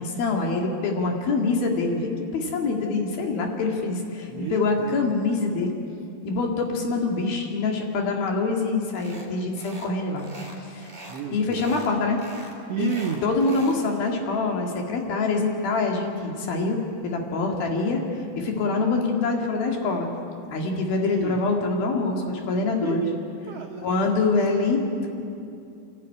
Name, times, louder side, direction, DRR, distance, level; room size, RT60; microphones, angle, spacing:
voice 1, 0.0-5.7 6.2-10.3 10.6-10.9 11.3-12.2 12.8-12.9 13.2-18.0 18.4-20.1 20.5-23.0 23.8-25.1, left 3 dB, 85° left, 1 dB, 4.1 m, -25 dB
voice 2, 4.3-5.1 10.8-11.7 12.4-13.3 21.0-21.4 22.8-23.2 23.5-23.9 24.3-24.5, right 9 dB, 75° right, 1 dB, 1.4 m, -32 dB
sound 1, 8.9-9.3 9.6-9.9 10.2-11.2 11.5-11.9 12.2-13.8, equal, 10° right, 2.8 m, -43 dB
28.0 x 12.5 x 9.8 m, 2.6 s
omnidirectional pair, 4.2 m